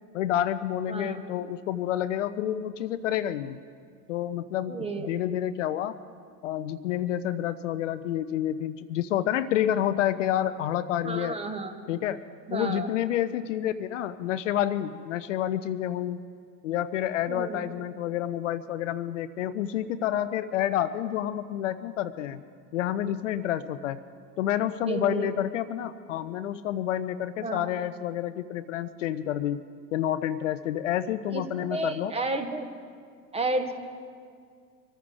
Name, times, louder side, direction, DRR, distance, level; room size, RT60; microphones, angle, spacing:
voice 1, 0.1-3.6 4.1-6.0 6.4-11.4 11.9-12.2 12.5-16.2 16.6-22.4 22.7-24.0 24.4-29.6 29.9-32.1, left 11 dB, 50° left, 13 dB, 0.6 m, -29 dB
voice 2, 4.7-5.1 11.0-11.7 12.5-12.9 17.3-17.6 24.9-25.3 27.4-27.7 31.3-32.7 33.3-33.9, right 3 dB, 10° right, 7 dB, 1.3 m, -31 dB
24.5 x 14.0 x 3.6 m, 2.2 s
figure-of-eight pair, 90°, 50 cm